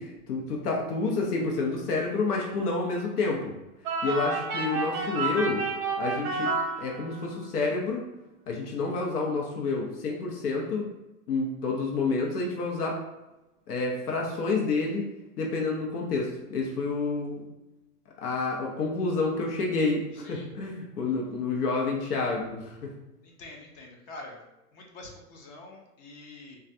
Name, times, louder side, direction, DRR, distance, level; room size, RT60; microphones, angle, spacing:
voice 1, 0.0-3.4 4.0-5.6 6.0-6.5 6.8-8.0 8.5-10.9 11.3-13.0 13.7-15.0 15.4-17.4 18.2-22.7, left 3 dB, 80° left, -1 dB, 0.8 m, -29 dB
sound 1, 3.8-7.4, right 3 dB, 25° right, 0.7 m, -30 dB
voice 2, 23.2-24.4 24.7-26.6, left 2 dB, 25° left, 0 dB, 0.4 m, -46 dB
3.2 x 2.3 x 2.6 m, 0.99 s
hypercardioid pair, 120°, 46 cm